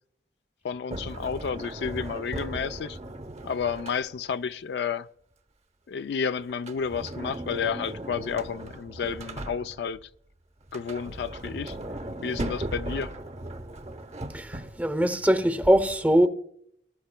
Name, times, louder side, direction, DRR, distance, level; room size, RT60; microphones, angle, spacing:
voice 1, 0.6-3.0 3.4-5.1 5.9-10.1 10.7-11.8 12.2-13.1, left 6 dB, 70° left, 0.4 m, -31 dB
Sliding door, 0.9-4.4 6.5-10.0 10.6-15.0, right 1 dB, 40° right, 0.8 m, -37 dB
voice 2, 14.3-16.3, equal, 10° right, 0.7 m, -22 dB
20.0 x 11.5 x 2.2 m
head